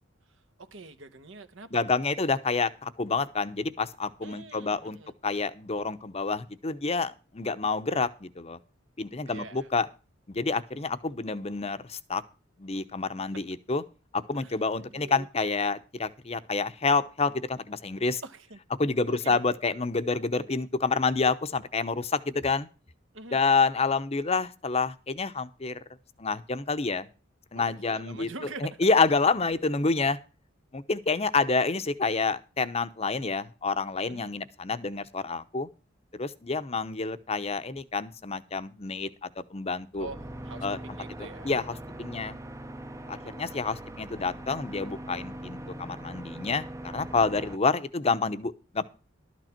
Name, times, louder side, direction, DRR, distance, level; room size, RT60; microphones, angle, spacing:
voice 1, 0.6-2.0 4.2-5.1 9.3-9.7 14.4-15.3 18.2-18.6 19.1-19.4 23.1-23.4 27.5-28.9 34.1-34.3 40.0-41.5, right 3 dB, 70° right, 1.3 m, -44 dB
voice 2, 1.7-5.0 5.2-8.6 9.0-9.9 10.3-12.2 12.6-13.8 14.1-18.2 18.8-22.7 23.3-25.8 26.2-27.1 27.5-28.3 28.6-30.2 30.7-35.7 36.1-40.1 40.6-40.8 41.2-42.4 43.1-48.8, left 4 dB, 30° left, 0.8 m, -28 dB
sound 1, 39.9-47.6, right 1 dB, 15° right, 0.7 m, -41 dB
12.5 x 9.1 x 4.4 m
head